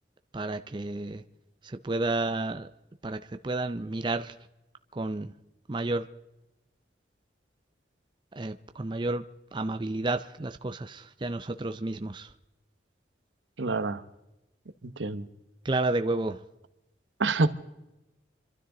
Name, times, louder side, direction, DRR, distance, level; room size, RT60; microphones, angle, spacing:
voice 1, 0.3-1.2 1.6-2.7 3.0-4.3 4.9-5.3 5.7-6.1 8.3-9.2 9.5-12.3 15.6-16.4, right 2 dB, 25° right, 0.5 m, -31 dB
voice 2, 13.6-14.0 15.0-15.3 17.2-17.5, right 3 dB, 85° right, 1.0 m, -26 dB
27.5 x 13.0 x 3.8 m
head